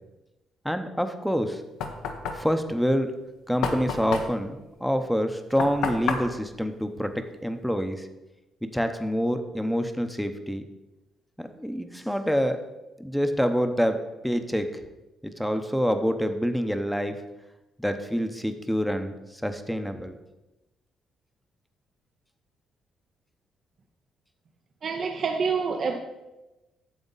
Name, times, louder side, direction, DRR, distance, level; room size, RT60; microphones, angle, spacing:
voice 1, 0.6-1.6 2.3-3.1 3.5-8.1 8.6-10.6 11.4-12.6 13.0-14.0 14.2-14.7 15.2-17.2 17.8-20.2, equal, ahead, 0.8 m, -27 dB
Knock, 1.3-7.7, left 5 dB, 90° left, 0.9 m, -33 dB
voice 2, 24.8-26.0, right 5 dB, 50° right, 0.7 m, -27 dB
9.2 x 6.9 x 4.0 m
cardioid pair, 90°, 0 cm